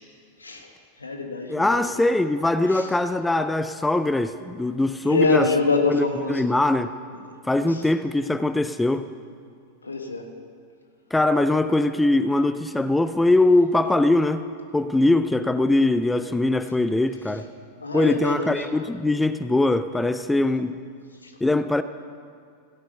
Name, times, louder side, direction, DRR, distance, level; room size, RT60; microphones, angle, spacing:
voice 1, 0.4-0.7 1.0-1.8 2.7-2.9 5.0-6.4 7.1-7.8 9.8-10.3 17.8-18.7 21.2-21.3, left 3 dB, 75° left, 4 dB, 1.6 m, -25 dB
voice 2, 1.5-5.5 5.9-6.9 7.4-9.1 11.1-17.5 17.9-20.7 21.4-21.8, left 2 dB, 5° left, 12 dB, 0.4 m, -22 dB
15.5 x 11.0 x 6.7 m, 2.2 s
figure-of-eight pair, 90°, 0 cm